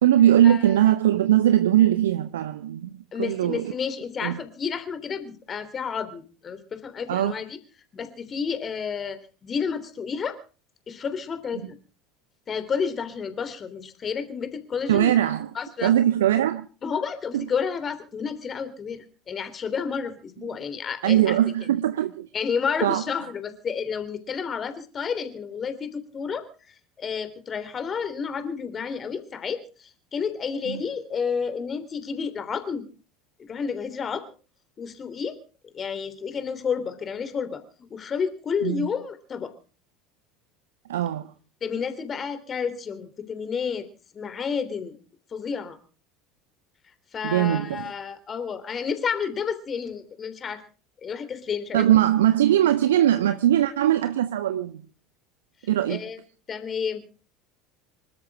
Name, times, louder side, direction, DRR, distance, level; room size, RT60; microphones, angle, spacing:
voice 1, 0.0-3.7 4.2-4.4 7.1-7.3 14.9-15.5 15.8-16.7 17.3-17.4 21.0-22.3 22.8-23.0 30.7-30.8 38.6-38.8 40.9-41.3 47.2-47.8 51.7-54.8 55.7-56.0, right 12 dB, 70° right, 0.9 m, -21 dB
voice 2, 3.1-7.6 7.9-10.4 10.9-11.8 12.5-15.3 15.5-15.9 16.8-21.4 22.3-32.9 33.4-34.2 34.8-35.4 35.7-39.5 41.6-43.9 44.1-45.0 45.3-45.8 47.1-50.6 51.0-51.9 55.6-56.2 56.5-57.1, left 6 dB, 30° left, 3.2 m, -31 dB
26.0 x 13.0 x 3.6 m
figure-of-eight pair, 70°, 0 cm